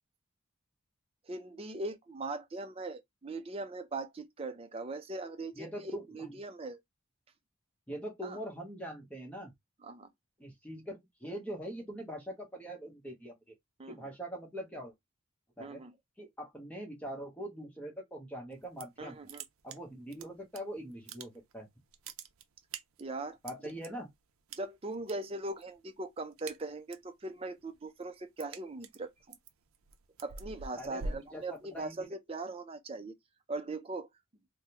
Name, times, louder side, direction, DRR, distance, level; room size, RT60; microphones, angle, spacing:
voice 1, 1.3-6.8 8.2-8.4 9.8-10.1 13.8-14.1 15.6-15.9 19.0-19.4 23.0-23.4 24.6-29.4 30.2-33.1 33.5-34.1, right 2 dB, 25° right, 0.5 m, -40 dB
voice 2, 5.6-6.4 7.9-9.5 10.4-13.3 13.9-14.9 15.6-15.8 16.2-19.1 19.6-21.7 23.4-24.1 30.7-32.1, right 1 dB, 5° left, 0.9 m, -43 dB
sound 1, 18.5-19.0 19.3-20.6 20.9-21.6 21.9-23.9 24.5-25.1 25.4-25.8 26.1-27.1 27.5-32.0, right 3 dB, 80° right, 0.5 m, -45 dB
3.5 x 2.2 x 2.8 m
head